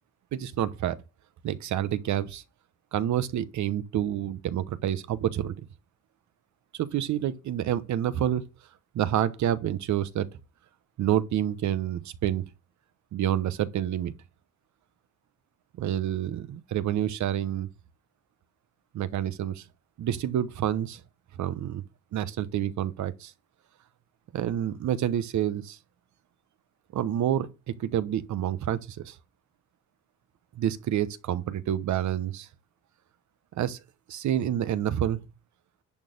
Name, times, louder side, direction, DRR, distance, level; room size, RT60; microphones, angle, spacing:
voice 1, 0.3-1.0 1.4-2.4 2.9-5.6 6.8-8.4 8.9-10.3 11.0-12.4 13.1-14.1 15.8-17.7 18.9-19.6 20.0-21.0 21.4-21.8 22.1-23.3 24.3-25.8 26.9-29.2 30.5-32.5 33.6-33.8 34.1-35.2, right 11 dB, 70° right, 1.0 m, -28 dB
10.5 x 4.3 x 6.5 m
cardioid pair, 90°, 30 cm